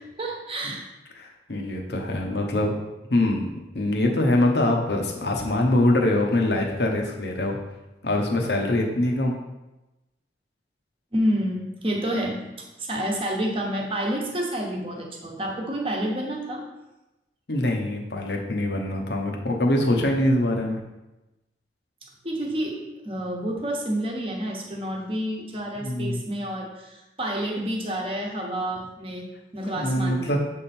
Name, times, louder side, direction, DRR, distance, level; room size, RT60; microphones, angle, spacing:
voice 1, 0.2-0.8 11.1-12.4 12.8-16.6 22.2-30.3, right 1 dB, 30° right, 0 dB, 1.1 m, -29 dB
voice 2, 1.2-2.8 3.1-3.5 3.7-7.6 8.0-9.4 17.5-20.8 25.8-26.2 29.7-30.4, left 1 dB, 70° left, 1 dB, 1.0 m, -23 dB
7.5 x 3.6 x 4.4 m, 1.0 s
head